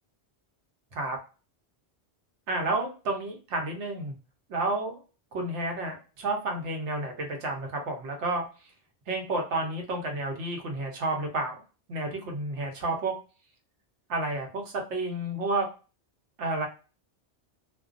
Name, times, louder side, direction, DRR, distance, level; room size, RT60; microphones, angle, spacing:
voice 1, 2.5-4.1 4.5-5.0 5.3-8.4 9.1-11.6 11.9-13.1 14.1-15.7 16.4-16.7, right 2 dB, 85° right, 2 dB, 1.1 m, -30 dB
2.4 x 2.2 x 2.4 m, 0.33 s
omnidirectional pair, 1.1 m